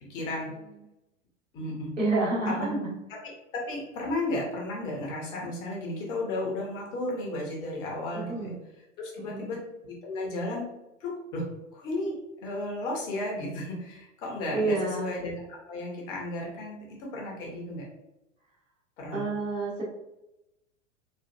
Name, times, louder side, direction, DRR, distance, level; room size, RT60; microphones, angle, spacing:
voice 1, 0.1-0.5 1.5-1.9 2.4-2.8 3.2-8.6 9.0-10.7 11.0-17.9 19.0-19.2, left 1 dB, 10° left, -2 dB, 0.3 m, -34 dB
voice 2, 2.0-2.8 8.1-8.5 9.2-9.5 14.5-15.1 19.1-19.8, right 2 dB, 80° right, -6 dB, 1.4 m, -29 dB
4.1 x 2.4 x 2.3 m, 0.91 s
figure-of-eight pair, 95°, 38 cm